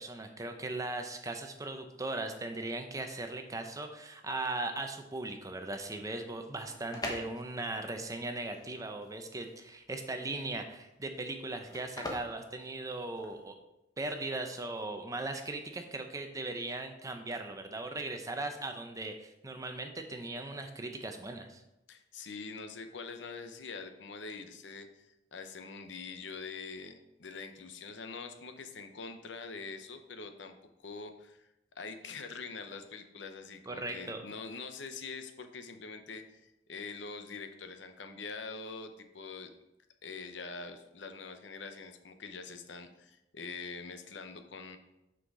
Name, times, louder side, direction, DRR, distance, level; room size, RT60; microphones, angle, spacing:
voice 1, 0.0-13.5 14.0-21.6 33.7-34.2, right 2 dB, 20° right, 6 dB, 0.7 m, -38 dB
sound 1, 6.5-13.5, left 1 dB, 20° left, 1.0 m, -44 dB
voice 2, 21.9-30.5 30.8-31.5 31.8-39.5 40.0-44.8, left 4 dB, 70° left, 7 dB, 0.8 m, -44 dB
6.4 x 5.6 x 4.8 m, 0.91 s
head